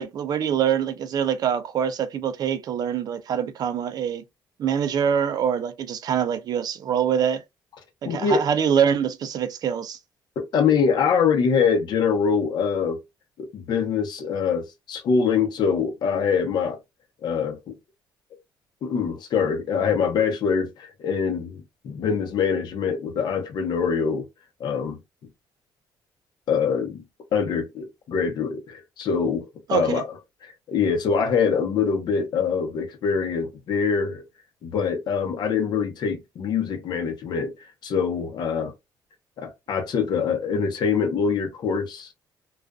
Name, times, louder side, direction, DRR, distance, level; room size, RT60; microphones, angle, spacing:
voice 1, 0.0-4.2 4.6-7.4 8.0-10.0 29.7-30.0, right 8 dB, 55° right, 0.5 m, -24 dB
voice 2, 8.0-8.4 10.4-13.0 13.4-16.8 17.2-17.7 18.8-24.2 24.6-25.0 26.5-27.0 27.3-30.0 30.7-34.2 34.6-37.5 37.8-38.7 39.4-42.1, left 6 dB, 65° left, 0.8 m, -24 dB
2.4 x 2.3 x 2.3 m
cardioid pair, 105°, 8 cm